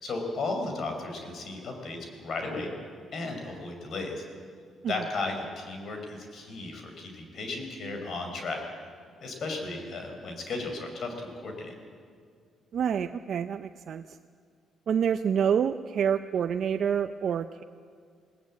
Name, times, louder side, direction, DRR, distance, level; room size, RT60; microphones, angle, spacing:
voice 1, 0.0-2.7 3.1-4.2 4.9-8.6 9.2-11.7, left 3 dB, 55° left, 4 dB, 5.0 m, -35 dB
voice 2, 12.7-14.0 14.9-17.6, right 7 dB, 60° right, 8 dB, 0.6 m, -27 dB
21.0 x 18.0 x 8.6 m, 2.2 s
cardioid pair, 90°, 0 cm